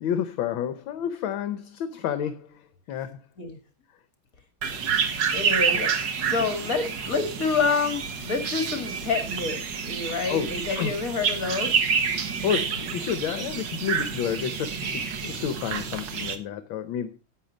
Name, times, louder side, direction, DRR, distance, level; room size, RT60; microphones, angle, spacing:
voice 1, 0.0-2.6 2.9-3.2 10.3-10.9 12.4-17.2, left 9 dB, 70° left, 1.5 m, -30 dB
sound 1, 4.6-16.4, right 6 dB, 60° right, 1.8 m, -28 dB
voice 2, 5.3-11.7, left 4 dB, 40° left, 2.5 m, -28 dB
10.5 x 8.9 x 5.1 m
omnidirectional pair, 2.4 m